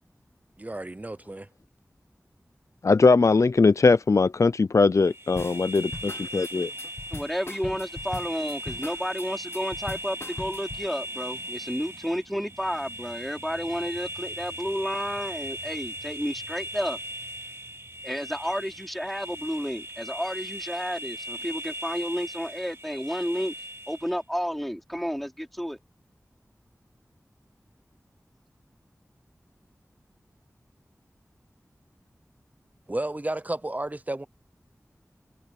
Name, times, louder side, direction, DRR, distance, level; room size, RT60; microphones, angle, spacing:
voice 1, 0.6-1.5 32.9-34.3, right 1 dB, 30° right, 0.7 m, -32 dB
voice 2, 2.8-6.7, left 4 dB, 65° left, 0.5 m, -20 dB
sound 1, 5.0-24.2, equal, 50° right, 3.3 m, -39 dB
sound 2, 5.4-10.9, left 2 dB, 45° left, 1.1 m, -40 dB
sound 3, 5.4-20.6, right 3 dB, 75° right, 6.7 m, -56 dB
voice 3, 7.1-17.0 18.0-23.5 23.9-25.8, equal, ahead, 4.5 m, -31 dB
wide cardioid pair, 65°, 6 cm